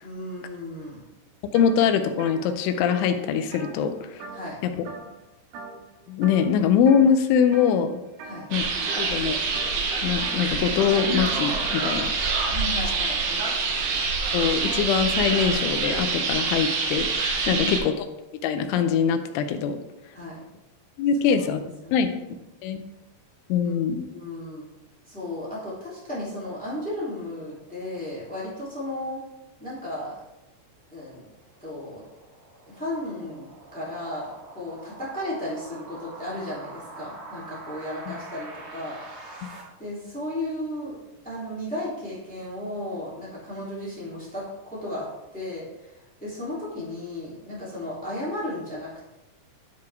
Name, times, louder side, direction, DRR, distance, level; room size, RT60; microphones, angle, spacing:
voice 1, 0.0-1.0 4.3-4.6 8.2-8.5 12.5-13.2 17.4-17.7 20.1-20.4 21.2-22.4 23.8-24.7 25.1-29.2 29.6-30.1 30.9-31.2 31.6-32.0 32.7-38.9 39.8-40.9 41.2-45.1 45.3-45.9 46.2-49.2, left 1 dB, 5° left, -8 dB, 1.7 m, -34 dB
voice 2, 1.5-3.9 6.1-8.0 8.5-8.7 9.0-9.4 10.0-12.1 14.3-17.9 18.4-19.8 21.0-21.6 21.9-22.1 22.6-22.8 23.5-24.0, left 7 dB, 85° left, 8 dB, 3.1 m, -23 dB
sound 1, 1.5-1.7 2.1-4.6 4.9-5.2 5.5-5.9 6.2-7.0 7.5-7.8 8.2-11.8, right 3 dB, 85° right, 3.7 m, -42 dB
sound 2, 8.5-17.8, right 4 dB, 70° right, 2.9 m, -26 dB
sound 3, 30.9-39.6, right 2 dB, 45° right, 2.7 m, -45 dB
12.0 x 4.8 x 3.5 m, 0.96 s
omnidirectional pair, 5.4 m